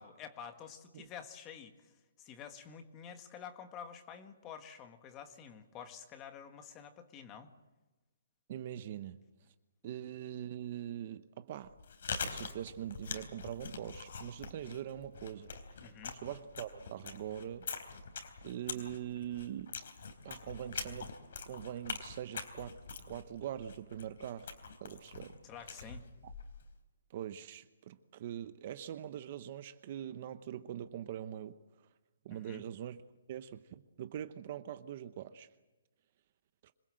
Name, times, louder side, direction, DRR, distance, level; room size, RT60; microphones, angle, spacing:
voice 1, 0.0-1.9 2.2-7.5 15.8-16.2 25.4-26.1 32.3-32.6, left 7 dB, 15° left, 8 dB, 1.7 m, -49 dB
voice 2, 8.5-9.2 9.8-11.7 12.3-15.5 16.1-18.0 18.4-19.7 20.2-21.1 21.5-22.7 23.1-24.5 24.8-25.4 25.7-25.9 26.2-26.3 27.1-31.6 32.2-33.0 33.3-35.5, right 10 dB, 35° right, 12 dB, 0.9 m, -43 dB
Chewing mastication, 11.6-26.7, left 5 dB, 55° left, 3.7 m, -44 dB
26.5 x 20.5 x 7.7 m, 1.1 s
hypercardioid pair, 170°, 0 cm